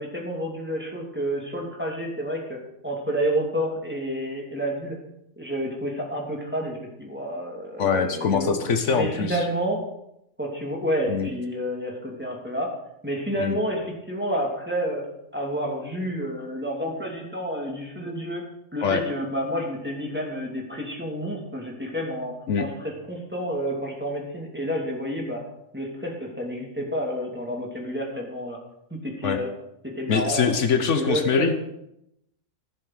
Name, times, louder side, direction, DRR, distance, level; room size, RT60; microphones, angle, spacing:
voice 1, 0.0-5.0 5.4-8.6 8.9-9.8 10.4-12.7 13.0-15.0 15.3-18.5 18.7-25.4 25.7-28.6 28.9-29.5 29.8-30.5 30.8-31.6, equal, 10° right, -1 dB, 2.7 m, -29 dB
voice 2, 7.8-9.5 11.1-11.3 13.4-13.6 18.8-19.0 22.5-22.7 29.2-29.4 30.1-31.5, left 6 dB, 70° left, 8 dB, 1.2 m, -23 dB
14.5 x 7.2 x 6.4 m, 0.80 s
omnidirectional pair, 1.3 m